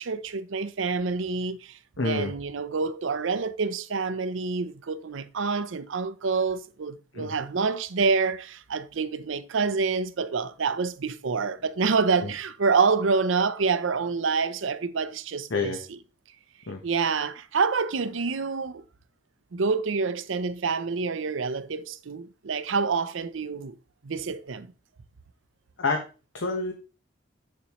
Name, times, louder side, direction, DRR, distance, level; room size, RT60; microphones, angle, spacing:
voice 1, 0.0-1.8 2.0-15.7 16.8-18.8 19.5-23.8 24.0-24.7, right 4 dB, 80° right, 0.6 m, -27 dB
voice 2, 2.0-2.3 7.1-7.3 12.2-12.3 15.5-15.8 16.7-16.8 25.8-26.0 26.3-26.7, left 3 dB, 75° left, 1.0 m, -28 dB
7.5 x 7.0 x 3.0 m
head